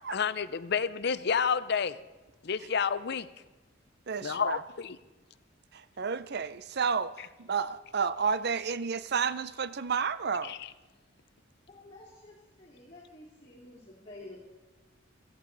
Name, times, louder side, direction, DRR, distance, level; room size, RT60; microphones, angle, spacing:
voice 1, 0.1-2.0 2.4-3.3 4.2-5.0 10.4-10.7, left 6 dB, 55° left, 0.6 m, -30 dB
voice 2, 4.1-4.6 5.7-10.6, right 6 dB, 55° right, 0.6 m, -31 dB
voice 3, 11.7-14.4, left 2 dB, 30° left, 2.9 m, -50 dB
17.0 x 14.5 x 4.0 m
head